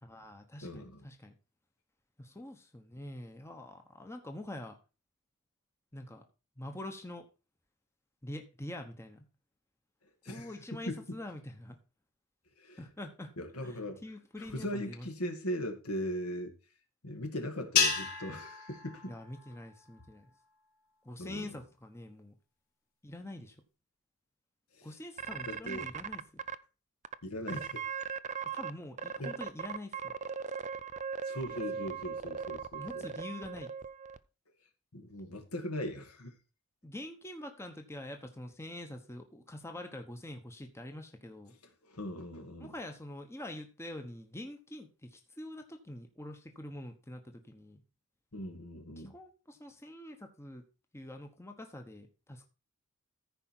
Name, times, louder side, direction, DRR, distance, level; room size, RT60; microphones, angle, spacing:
voice 1, 0.0-1.3 2.2-4.8 5.9-6.2 6.6-7.3 8.2-9.2 10.3-11.8 12.8-13.3 13.6-15.1 19.1-20.3 21.0-22.3 23.0-23.6 24.8-26.4 28.5-30.1 31.7-31.9 32.8-33.7 36.8-41.5 42.6-47.8 49.0-50.6 50.9-52.5, left 1 dB, 10° left, 1.0 m, -45 dB
voice 2, 0.6-1.0 10.2-11.2 12.6-12.8 13.4-14.0 14.5-16.5 17.0-19.1 21.2-21.5 24.8-24.9 25.5-25.9 27.2-27.9 29.2-29.4 31.3-33.1 34.9-36.4 41.9-42.7 48.3-49.1, equal, 75° left, 2.1 m, -39 dB
sound 1, 17.8-20.2, left 6 dB, 40° left, 3.3 m, -32 dB
sound 2, 25.2-26.6 27.0-27.1 27.5-28.7 29.0-34.2, right 6 dB, 30° right, 0.4 m, -38 dB
14.5 x 5.0 x 4.4 m
head